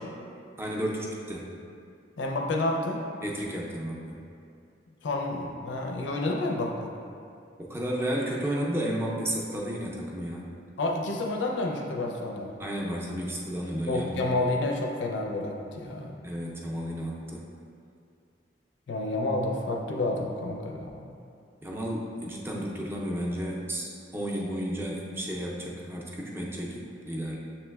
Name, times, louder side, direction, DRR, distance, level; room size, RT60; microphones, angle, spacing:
voice 1, 0.6-1.5 3.2-4.2 7.6-10.5 12.6-14.3 16.2-17.4 21.6-27.4, equal, 15° right, -3 dB, 0.5 m, -32 dB
voice 2, 2.2-3.1 5.0-6.9 10.8-12.5 13.9-16.2 18.9-21.1, left 2 dB, 85° left, 1 dB, 0.5 m, -29 dB
6.9 x 3.0 x 2.3 m, 2.4 s
head